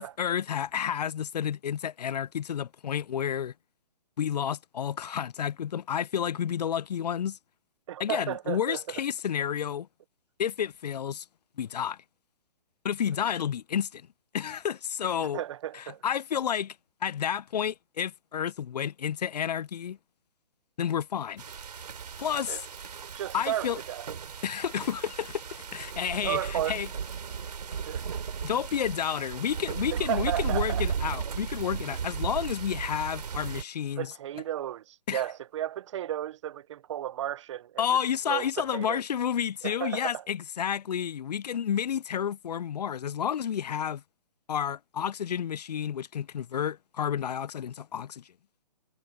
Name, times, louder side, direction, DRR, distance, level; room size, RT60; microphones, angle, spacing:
voice 1, 0.0-3.5 4.2-7.4 8.0-9.9 10.4-11.3 11.6-12.0 12.8-14.0 14.3-15.4 15.7-16.8 17.0-20.0 20.8-21.4 22.2-22.6 23.3-23.8 24.4-26.9 28.4-34.1 35.1-35.2 37.8-44.0 44.5-48.2, left 8 dB, 70° left, 0.5 m, -30 dB
voice 2, 7.9-8.8 15.2-16.0 22.5-22.6 23.1-24.1 26.2-26.8 27.9-28.2 29.9-30.9 34.0-37.9 38.3-39.0 39.6-40.2, right 11 dB, 45° right, 0.6 m, -34 dB
sound 1, 21.4-33.6, right 6 dB, 70° right, 3.6 m, -35 dB
hypercardioid pair, 140°, 21 cm